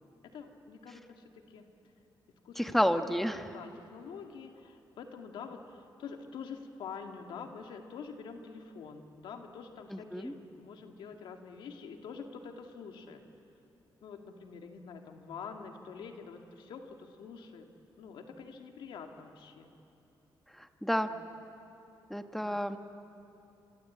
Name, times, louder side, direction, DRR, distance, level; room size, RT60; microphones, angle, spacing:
voice 1, 0.3-1.7 2.4-3.2 3.5-13.2 14.0-17.7 18.0-19.7 20.9-21.2 22.3-22.6, left 5 dB, 85° left, 4 dB, 2.1 m, -46 dB
voice 2, 2.6-3.5 9.9-10.3 20.6-21.1 22.1-22.8, equal, 5° left, 7 dB, 1.2 m, -30 dB
25.5 x 25.0 x 8.5 m, 2.8 s
cardioid pair, 95°, 8 cm